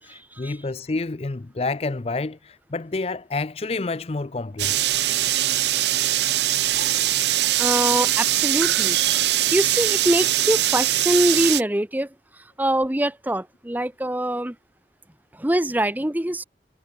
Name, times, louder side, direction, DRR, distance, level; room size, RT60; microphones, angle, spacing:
voice 1, 0.0-4.9, left 3 dB, 35° left, 0.5 m, -29 dB
sound 1, 4.6-11.6, right 14 dB, 75° right, 0.8 m, -22 dB
voice 2, 7.6-9.0 9.5-12.1 12.6-14.6 15.3-16.4, right 1 dB, 10° right, 0.8 m, -23 dB
head